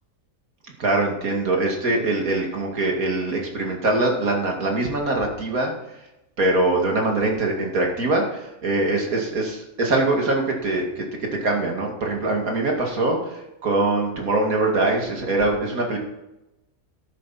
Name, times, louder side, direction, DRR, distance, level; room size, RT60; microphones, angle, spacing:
voice 1, 0.6-5.7 6.4-11.0 11.4-16.0, right 2 dB, 65° right, 1 dB, 2.8 m, -23 dB
13.0 x 11.5 x 4.3 m, 0.95 s
omnidirectional pair, 1.6 m